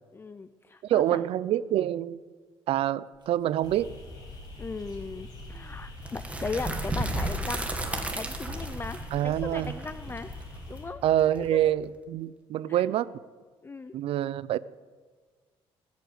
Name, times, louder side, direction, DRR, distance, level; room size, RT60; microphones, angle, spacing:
voice 1, 0.1-1.2 4.6-7.7 8.1-10.3 10.7-11.0 11.5-11.6 12.7-12.8 13.6-13.9, left 4 dB, 20° left, 12 dB, 0.5 m, -37 dB
voice 2, 0.8-2.2 2.7-3.9 9.1-9.8 11.0-13.1 13.9-14.6, right 12 dB, 70° right, 18 dB, 0.6 m, -26 dB
Bird, 3.1-6.7 7.1-10.9, right 3 dB, 50° right, 1.7 m, -51 dB
sound 1, 3.6-10.8, left 2 dB, 40° left, 6.6 m, -43 dB
sound 2, 6.0-11.8, right 1 dB, 15° right, 2.0 m, -34 dB
19.5 x 8.5 x 8.0 m, 1.5 s
cardioid pair, 110°, 10 cm